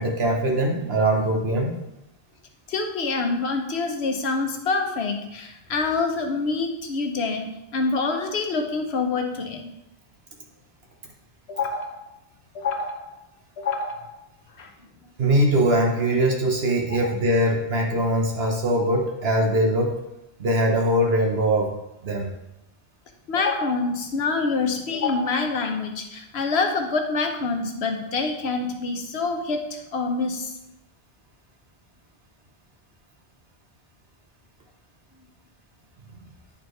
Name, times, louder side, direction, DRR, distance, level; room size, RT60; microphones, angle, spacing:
voice 1, 0.0-1.7 15.2-19.9 20.4-21.7 22.0-22.3, right 1 dB, 75° right, 1 dB, 1.4 m, -22 dB
voice 2, 2.7-9.7 11.5-12.0 12.5-13.1 13.6-14.1 14.6-14.7 16.9-17.1 23.3-29.6 29.9-30.5, left 4 dB, 85° left, 4 dB, 1.2 m, -26 dB
10.0 x 4.5 x 3.2 m, 0.89 s
omnidirectional pair, 1.0 m